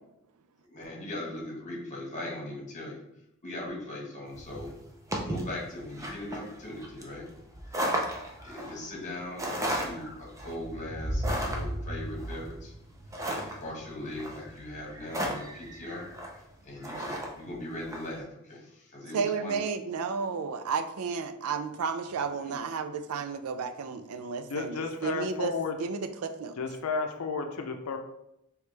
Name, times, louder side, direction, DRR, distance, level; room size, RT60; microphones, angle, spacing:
voice 1, 0.6-3.0 3.4-4.7 5.2-7.3 8.4-12.7 13.4-16.1 16.6-19.6 22.4-22.6, left 1 dB, 35° left, -2 dB, 1.3 m, -39 dB
sound 1, 4.3-18.1, equal, 15° right, 0.6 m, -35 dB
voice 2, 19.1-24.7 25.0-25.5 25.8-26.5, right 5 dB, 75° right, 9 dB, 0.4 m, -32 dB
voice 3, 24.5-25.8 26.6-28.0, left 4 dB, 85° left, 5 dB, 0.5 m, -32 dB
4.9 x 3.2 x 3.3 m, 0.83 s
head